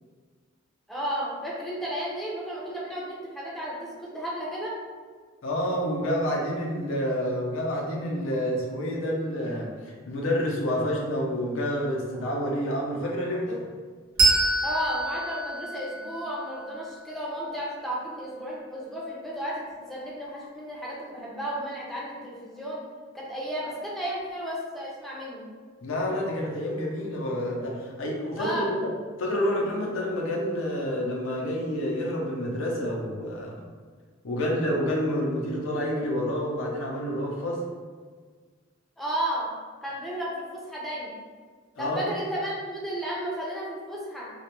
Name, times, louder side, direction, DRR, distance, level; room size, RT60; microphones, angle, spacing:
voice 1, 0.9-4.7 14.6-22.8 23.1-25.4 28.4-28.7 39.0-39.5 39.8-41.1 41.8-44.3, equal, ahead, -6 dB, 0.4 m, -33 dB
voice 2, 5.4-13.6 25.8-28.9 29.2-33.6 34.2-37.6 41.8-42.1, equal, 90° left, -2 dB, 0.5 m, -28 dB
Bell, 14.2-17.3, right 2 dB, 90° right, 0.9 m, -26 dB
2.2 x 2.1 x 2.9 m, 1.5 s
head